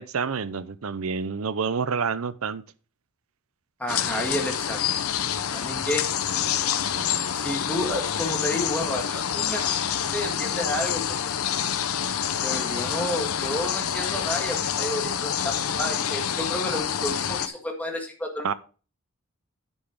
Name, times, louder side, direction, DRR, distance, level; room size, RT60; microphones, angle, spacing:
voice 1, 0.0-2.6 18.4-18.5, right 5 dB, 75° right, 0.6 m, -28 dB
voice 2, 3.8-4.8 5.5-6.1 7.3-9.6 10.1-11.2 12.4-18.5, left 1 dB, 5° left, 1.8 m, -31 dB
sound 1, 3.9-17.5, left 8 dB, 85° left, 0.7 m, -27 dB
10.0 x 5.9 x 4.9 m
head